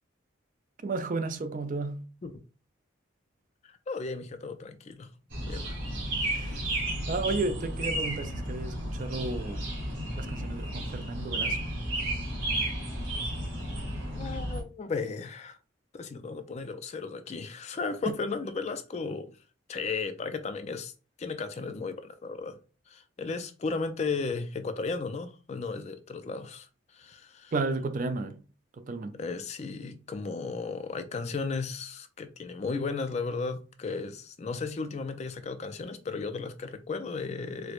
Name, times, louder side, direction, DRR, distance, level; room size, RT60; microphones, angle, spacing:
voice 1, 0.8-2.1 6.3-6.7 7.1-9.7 10.2-11.6 18.1-18.2 27.5-28.4 28.8-29.2, right 3 dB, 40° right, 0.4 m, -33 dB
voice 2, 3.7-5.1 5.5-5.8 6.5-6.6 14.1-15.6 15.9-19.3 19.7-20.9 21.2-22.6 22.9-26.7 26.9-27.5 29.2-37.7, left 4 dB, 35° left, 0.3 m, -35 dB
sound 1, 5.3-14.6, right 1 dB, 70° right, 1.7 m, -33 dB
4.4 x 2.1 x 2.4 m
head